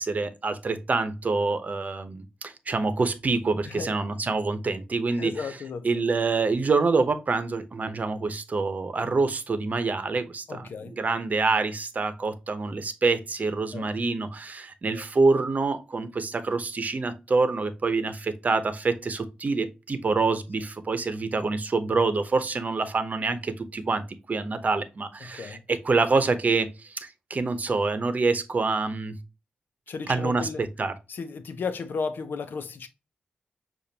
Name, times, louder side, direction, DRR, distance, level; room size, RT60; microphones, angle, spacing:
voice 1, 0.0-5.3 5.8-29.2 30.1-30.9, right 3 dB, 50° right, 0.8 m, -26 dB
voice 2, 5.1-5.9 10.5-10.9 13.7-13.9 14.9-15.0 25.2-25.6 29.9-30.6 31.1-32.9, left 5 dB, 85° left, 0.7 m, -34 dB
6.7 x 2.5 x 2.8 m
cardioid pair, 65°, 3 cm